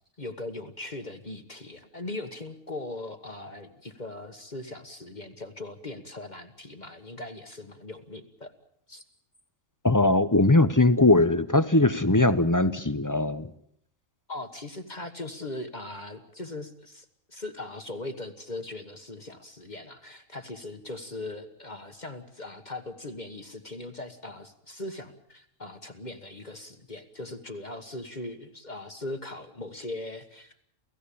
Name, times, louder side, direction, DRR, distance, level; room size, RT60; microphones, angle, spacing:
voice 1, 0.2-8.5 8.9-9.0 14.3-30.6, left 2 dB, 35° left, 7 dB, 1.6 m, -39 dB
voice 2, 9.8-13.4, left 2 dB, 15° left, 13 dB, 0.8 m, -20 dB
28.5 x 16.0 x 8.6 m, 0.70 s
omnidirectional pair, 1.4 m